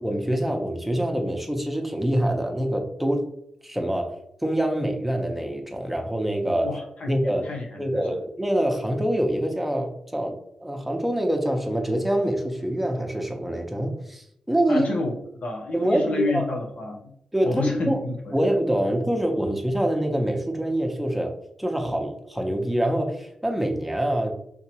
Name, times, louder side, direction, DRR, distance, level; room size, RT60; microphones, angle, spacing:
voice 1, 0.0-3.3 3.6-4.1 4.4-6.7 7.1-7.5 7.8-14.9 15.7-16.5 17.3-18.0 18.3-24.3, right 1 dB, 5° right, 2 dB, 0.8 m, -25 dB
voice 2, 6.6-8.0 14.7-17.1 17.4-18.2, left 3 dB, 65° left, 1 dB, 0.8 m, -30 dB
3.6 x 2.9 x 2.9 m, 0.74 s
supercardioid pair, 45°, 2 cm